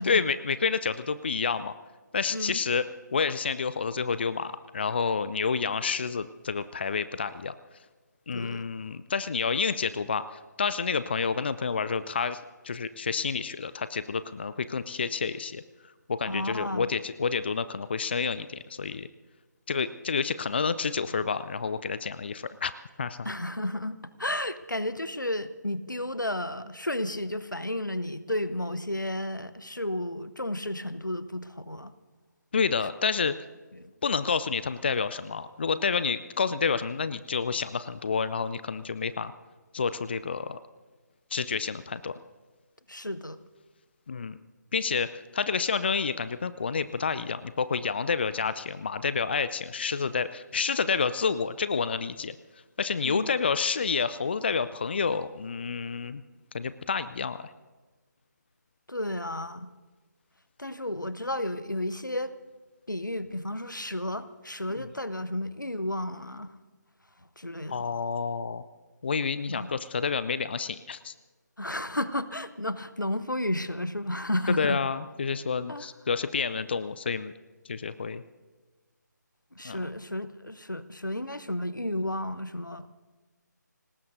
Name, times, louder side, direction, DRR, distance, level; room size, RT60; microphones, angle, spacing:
voice 1, 0.0-1.7 2.1-2.9 3.1-7.5 8.3-15.6 16.1-19.1 19.7-22.7 23.0-23.3 32.5-33.3 34.0-39.3 39.7-40.6 41.3-42.2 44.1-44.4 44.7-52.4 52.8-56.2 56.5-57.5 64.8-64.9 67.7-68.6 69.0-71.1 74.5-77.3 77.7-78.2 79.6-79.8, left 5 dB, 35° left, 14 dB, 0.4 m, -29 dB
voice 2, 8.3-8.7 16.3-16.9 23.2-31.9 33.8-33.9 42.9-43.4 53.0-53.3 58.9-59.7 60.6-62.3 62.9-66.5 67.4-67.8 69.5-69.7 71.6-74.8 75.7-75.9 79.5-82.9, left 1 dB, 90° left, 14 dB, 0.9 m, -32 dB
25.5 x 19.0 x 2.7 m, 1.3 s
figure-of-eight pair, 155°, 10 cm